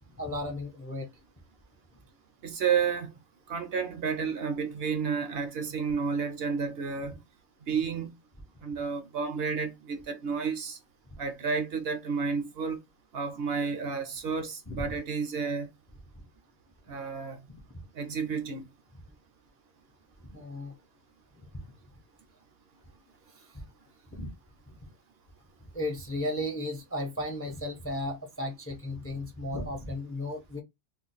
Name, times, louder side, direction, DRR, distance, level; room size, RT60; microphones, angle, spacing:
voice 1, 0.2-1.1 14.7-14.9 20.3-20.7 24.1-24.3 25.7-30.6, left 1 dB, 15° left, 0.5 m, -34 dB
voice 2, 2.4-3.1 3.5-7.2 7.7-8.1 8.6-10.8 11.2-12.8 13.1-15.7 16.9-17.4 17.9-18.6, right 5 dB, 65° right, 0.8 m, -31 dB
2.5 x 2.3 x 3.9 m
omnidirectional pair, 1.2 m